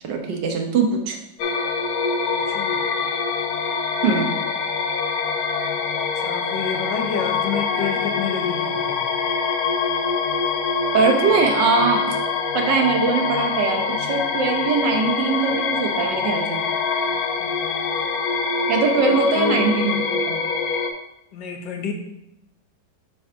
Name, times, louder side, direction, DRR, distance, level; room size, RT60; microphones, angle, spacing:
voice 1, 0.0-1.2 4.0-4.3 10.9-12.1 12.5-16.6 18.7-20.4, right 4 dB, 80° right, 3 dB, 1.6 m, -21 dB
sound 1, 1.4-20.9, left 5 dB, 70° left, 1.1 m, -24 dB
voice 2, 2.3-2.9 6.2-9.1 17.4-18.1 19.1-19.6 21.3-21.9, left 6 dB, 90° left, 4 dB, 1.5 m, -29 dB
6.2 x 3.4 x 5.6 m, 0.83 s
omnidirectional pair, 1.9 m